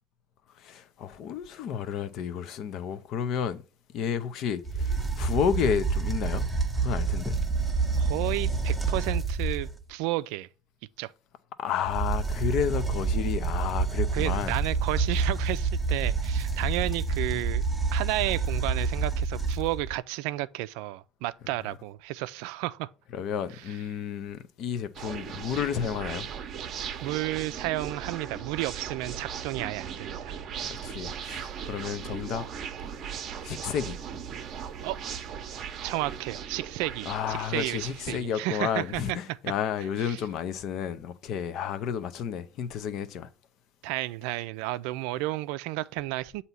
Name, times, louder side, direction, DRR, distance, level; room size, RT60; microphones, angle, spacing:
voice 1, 0.6-3.6 3.9-7.4 11.6-14.5 23.1-26.3 30.7-32.4 33.4-34.0 37.0-43.3, left 8 dB, 55° left, 0.7 m, -31 dB
sound 1, 4.6-9.8 11.8-19.9, right 4 dB, 5° right, 0.7 m, -28 dB
voice 2, 8.0-10.5 11.0-11.1 14.1-17.6 17.9-22.9 27.0-30.4 34.8-35.0 35.8-39.2 40.0-40.2 43.8-46.4, right 17 dB, 80° right, 0.4 m, -32 dB
sound 2, 25.0-38.2, right 7 dB, 40° right, 0.7 m, -38 dB
8.0 x 2.8 x 5.5 m
cardioid pair, 135°, 0 cm